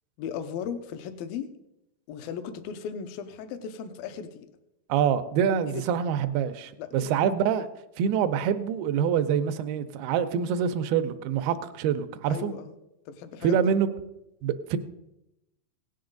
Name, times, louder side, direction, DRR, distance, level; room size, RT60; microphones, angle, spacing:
voice 1, 0.2-1.5 2.1-4.5 5.7-6.0 6.8-7.1 12.3-12.7 13.1-13.6, left 7 dB, 75° left, 9 dB, 2.3 m, -37 dB
voice 2, 4.9-7.7 8.0-12.5 13.4-13.9 14.4-14.8, right 8 dB, 80° right, 10 dB, 2.4 m, -25 dB
17.0 x 9.6 x 3.9 m, 0.89 s
omnidirectional pair, 4.9 m